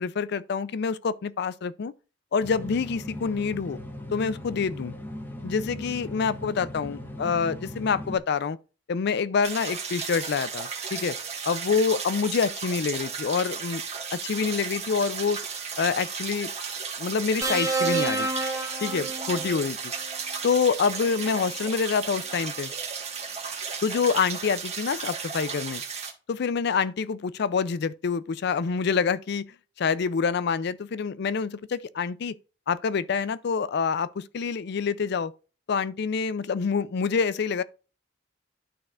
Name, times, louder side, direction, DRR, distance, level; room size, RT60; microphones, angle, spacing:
voice 1, 0.0-1.9 2.3-3.8 4.1-4.9 5.4-8.6 8.9-11.2 11.4-13.8 14.1-15.4 15.8-16.5 17.0-18.3 18.8-19.8 20.4-22.7 23.8-25.8 26.3-29.5 29.8-32.3 32.7-35.3 35.7-37.6, left 5 dB, 60° left, 0.4 m, -26 dB
sound 1, 2.4-8.2, left 1 dB, 10° left, 0.8 m, -38 dB
sound 2, 9.4-26.1, right 6 dB, 35° right, 1.4 m, -34 dB
sound 3, 17.4-19.7 21.0-21.2, right 3 dB, 15° right, 0.9 m, -28 dB
12.0 x 4.1 x 2.4 m
head